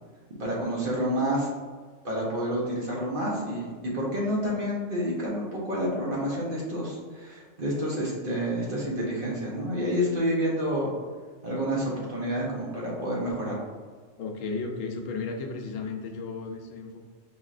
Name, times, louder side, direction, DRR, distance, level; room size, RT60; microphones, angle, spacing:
voice 1, 0.4-1.5 2.0-10.9 11.4-13.6, equal, 45° right, -4 dB, 1.0 m, -29 dB
voice 2, 14.2-17.0, left 4 dB, 80° left, 3 dB, 1.0 m, -34 dB
4.7 x 2.9 x 2.4 m, 1.5 s
omnidirectional pair, 1.3 m